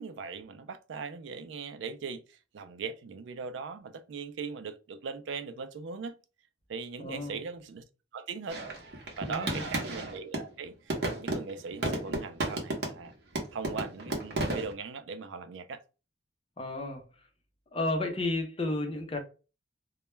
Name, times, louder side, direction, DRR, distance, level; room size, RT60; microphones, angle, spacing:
voice 1, 0.0-6.2 6.7-7.8 8.1-8.6 9.2-13.1 13.5-15.8, right 5 dB, 90° right, 0.4 m, -40 dB
voice 2, 7.0-7.4 9.2-9.7 16.6-17.1 17.7-19.2, left 2 dB, 30° left, 0.5 m, -32 dB
sound 1, 8.5-10.5 10.9-13.1 13.4-14.7, right 2 dB, 60° right, 0.8 m, -33 dB
2.2 x 2.1 x 3.0 m
head